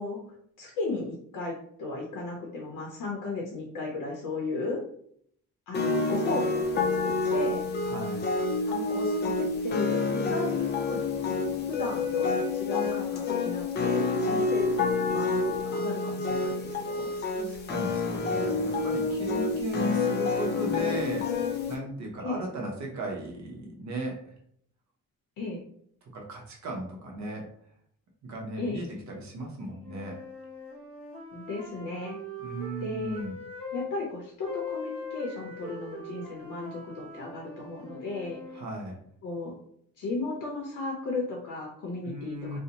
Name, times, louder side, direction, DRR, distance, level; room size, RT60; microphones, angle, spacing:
voice 1, 0.0-4.8 5.7-7.6 8.6-11.0 11.6-14.7 15.0-17.1 22.2-22.4 25.4-25.6 28.6-28.8 31.3-32.2 32.8-33.2 33.7-38.4 39.2-39.5 40.0-42.6, left 3 dB, 70° left, -1 dB, 0.7 m, -35 dB
sound 1, 5.7-21.8, left 3 dB, 35° left, 0.4 m, -28 dB
voice 2, 7.9-8.3 17.4-24.3 26.1-27.5 28.2-30.2 32.4-33.4 38.5-39.0 42.0-42.6, right 1 dB, 55° right, 0 dB, 0.7 m, -36 dB
sound 2, 29.8-33.9 34.4-38.7, left 2 dB, 15° right, 0.8 m, -41 dB
2.6 x 2.0 x 2.8 m, 0.65 s
cardioid pair, 175°, 33 cm